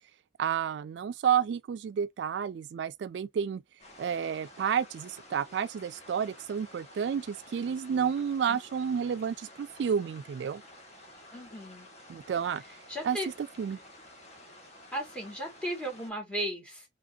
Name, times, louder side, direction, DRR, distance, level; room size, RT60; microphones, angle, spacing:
voice 1, 0.4-3.6 4.0-10.6 12.1-12.6 13.0-13.8, right 7 dB, 70° right, 0.3 m, -30 dB
sound 1, 3.8-16.1, left 1 dB, 40° left, 1.5 m, -52 dB
voice 2, 11.3-11.9 12.9-13.3 14.9-16.9, equal, 5° left, 2.0 m, -35 dB
5.0 x 2.9 x 2.7 m
head